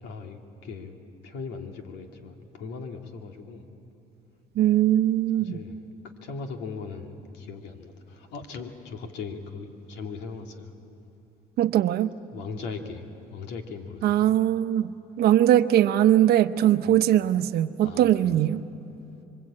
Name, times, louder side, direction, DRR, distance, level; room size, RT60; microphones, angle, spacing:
voice 1, 0.0-0.9 1.2-3.7 5.4-5.8 6.2-10.7 12.3-14.2 16.8-17.0 17.8-18.4, left 4 dB, 90° left, 4 dB, 2.3 m, -39 dB
voice 2, 4.6-5.6 11.6-12.1 14.0-18.6, right 12 dB, 70° right, 11 dB, 0.9 m, -21 dB
26.5 x 23.5 x 8.7 m, 2.8 s
cardioid pair, 110°, 17 cm